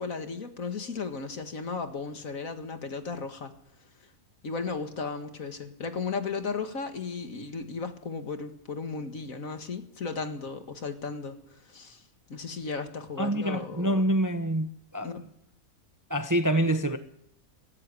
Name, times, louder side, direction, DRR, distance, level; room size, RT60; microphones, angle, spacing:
voice 1, 0.0-3.5 4.4-12.0 12.3-14.0 15.0-15.2, left 4 dB, 65° left, 2.2 m, -35 dB
voice 2, 13.2-15.1 16.1-17.0, right 1 dB, 15° right, 0.8 m, -26 dB
17.0 x 15.5 x 10.0 m
omnidirectional pair, 1.5 m